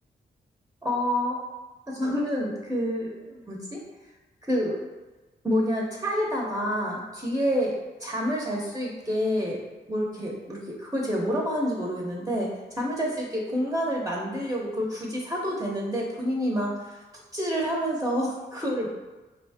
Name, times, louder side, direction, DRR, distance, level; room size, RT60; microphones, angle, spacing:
voice 1, 0.8-1.4 1.9-3.8 4.5-4.8 5.4-7.7 8.0-9.6 9.9-17.0 17.3-18.9, equal, 15° right, -3 dB, 0.8 m, -28 dB
3.9 x 2.7 x 3.4 m, 1.2 s
cardioid pair, 65°, 18 cm